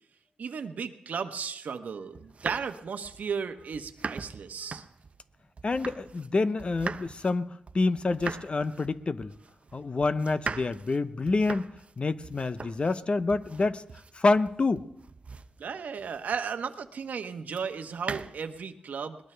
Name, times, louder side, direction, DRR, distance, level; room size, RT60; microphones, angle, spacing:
voice 1, 0.4-4.8 15.6-19.2, right 6 dB, 80° right, 8 dB, 1.1 m, -35 dB
sound 1, 2.2-6.3 6.6-16.5 17.5-18.7, right 4 dB, 50° right, 0.6 m, -41 dB
voice 2, 5.6-7.5 7.7-9.3 9.7-13.8 14.2-14.9, left 3 dB, 40° left, 13 dB, 0.7 m, -27 dB
21.5 x 19.5 x 3.4 m, 0.73 s
cardioid pair, 80°, 3 cm